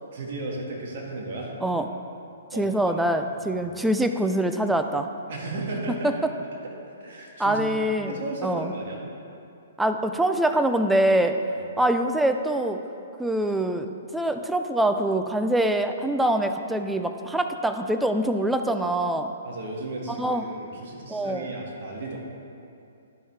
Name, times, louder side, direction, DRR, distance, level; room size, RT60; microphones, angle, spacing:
voice 1, 0.1-1.5 2.5-3.6 5.3-6.1 7.0-7.6 8.0-9.1 11.5-11.6 19.4-22.2, right 2 dB, 55° right, -1 dB, 1.7 m, -35 dB
voice 2, 2.5-5.1 5.9-6.1 7.4-8.7 9.8-11.4 11.8-12.8 13.2-19.3 20.1-20.5 21.1-21.5, right 1 dB, 5° right, 6 dB, 0.4 m, -24 dB
11.0 x 5.4 x 3.3 m, 2.6 s
hypercardioid pair, 140°, 0 cm